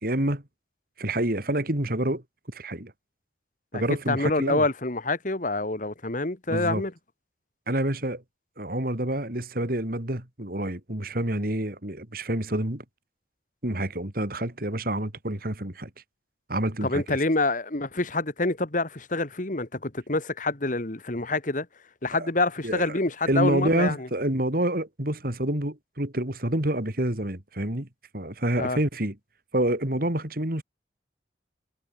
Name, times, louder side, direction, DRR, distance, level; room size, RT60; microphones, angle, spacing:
voice 1, 0.0-0.4 1.0-2.2 2.5-2.9 3.7-4.6 6.5-6.8 7.7-8.2 8.6-12.8 13.6-15.9 16.5-17.2 22.1-22.3 22.6-23.0 23.3-27.9 28.1-29.2 29.5-30.6, right 1 dB, 50° right, 3.1 m, -28 dB
voice 2, 4.1-6.9 16.8-21.7 22.0-24.1 28.6-28.8, left 2 dB, 45° left, 1.7 m, -27 dB
head